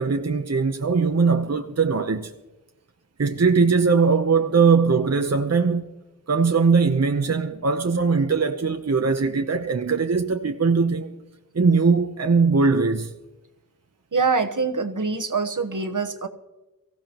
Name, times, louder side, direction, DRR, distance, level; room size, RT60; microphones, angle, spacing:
voice 1, 0.0-2.3 3.2-5.9 6.3-11.1 11.5-13.1, right 4 dB, 50° right, 0.8 m, -20 dB
voice 2, 14.1-16.3, right 4 dB, 65° right, 1.2 m, -24 dB
23.5 x 16.0 x 3.0 m
wide cardioid pair, 55°, 33 cm